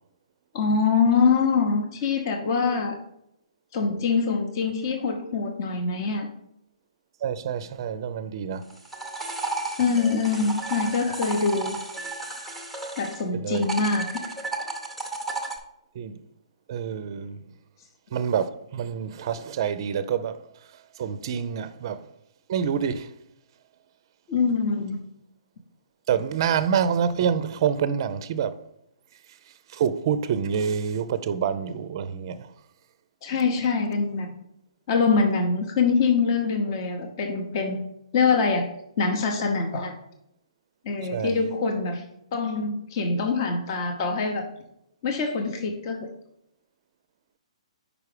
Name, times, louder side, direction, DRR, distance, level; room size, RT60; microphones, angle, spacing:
voice 1, 0.5-2.9 3.7-6.3 9.8-11.8 13.0-14.2 24.3-25.0 33.2-34.3 34.9-37.8 38.1-38.7 39.0-39.9 40.8-42.0 42.3-44.5 45.0-46.1, left 4 dB, 35° left, 0.8 m, -24 dB
voice 2, 7.2-8.7 13.3-13.7 15.9-16.2 16.7-17.4 18.1-20.4 21.0-22.0 22.5-23.1 26.1-28.5 29.7-32.5 41.1-41.4, right 7 dB, 40° right, 0.4 m, -27 dB
sound 1, 8.6-13.2 13.5-15.6, right 3 dB, 5° left, 0.7 m, -33 dB
5.0 x 4.8 x 4.8 m
hypercardioid pair, 160°, 4 cm